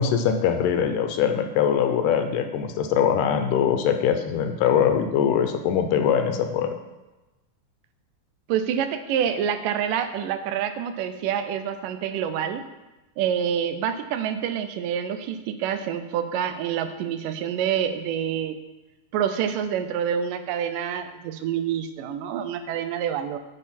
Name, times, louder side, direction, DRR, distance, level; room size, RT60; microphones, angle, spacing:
voice 1, 0.0-6.7, left 8 dB, 80° left, 7 dB, 2.3 m, -22 dB
voice 2, 8.5-12.7 13.2-18.6 19.1-23.4, right 8 dB, 85° right, 9 dB, 2.3 m, -27 dB
10.0 x 6.6 x 4.3 m, 1.1 s
omnidirectional pair, 3.8 m